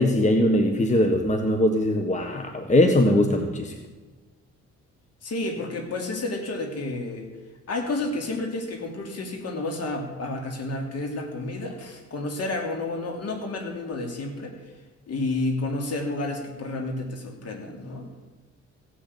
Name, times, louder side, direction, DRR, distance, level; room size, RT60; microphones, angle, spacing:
voice 1, 0.0-3.7, left 1 dB, 25° left, 5 dB, 1.4 m, -21 dB
voice 2, 5.2-7.3 7.7-14.6 15.1-18.1, left 2 dB, 55° left, 3 dB, 3.1 m, -30 dB
16.5 x 6.8 x 8.5 m, 1.3 s
cardioid pair, 90°, 30 cm